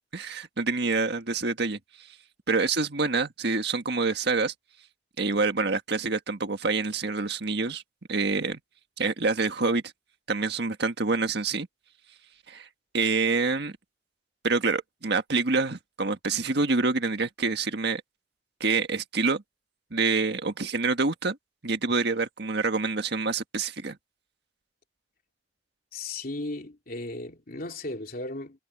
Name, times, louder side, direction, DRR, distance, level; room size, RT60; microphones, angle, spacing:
voice 1, 0.1-1.8 2.5-4.5 5.2-7.8 8.1-8.6 9.0-9.8 10.3-11.7 12.5-12.7 12.9-13.7 14.4-18.0 18.6-19.4 19.9-21.4 21.6-24.0, right 4 dB, 65° right, 1.7 m, -26 dB
voice 2, 25.9-28.6, left 2 dB, 55° left, 3.1 m, -36 dB
head